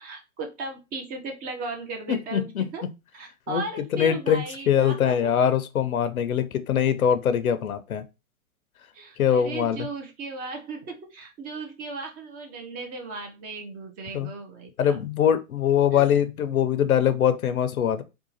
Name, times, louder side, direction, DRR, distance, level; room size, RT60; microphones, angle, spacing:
voice 1, 0.0-2.8 3.1-5.5 8.9-15.0 15.9-16.1, right 3 dB, 20° right, 0.9 m, -36 dB
voice 2, 2.1-2.9 3.5-3.6 3.9-8.0 9.2-9.9 14.1-14.3 14.8-18.0, left 9 dB, 80° left, 0.8 m, -23 dB
3.8 x 2.4 x 4.2 m
hypercardioid pair, 135°, 42 cm